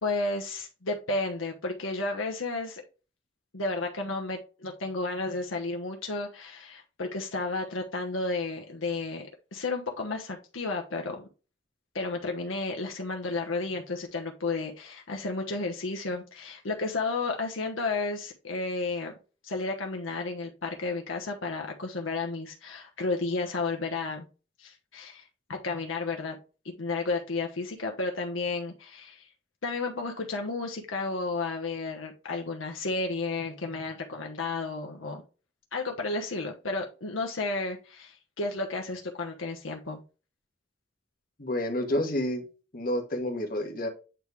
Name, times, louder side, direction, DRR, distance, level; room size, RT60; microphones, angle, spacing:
voice 1, 0.0-2.8 3.5-11.3 11.9-19.1 19.4-24.3 24.6-26.4 26.6-29.3 29.6-35.2 35.7-40.0, left 3 dB, 85° left, 2 dB, 1.1 m, -32 dB
voice 2, 41.4-42.4 42.7-43.9, left 1 dB, 45° left, 3 dB, 1.4 m, -29 dB
8.9 x 3.2 x 3.4 m, 0.33 s
head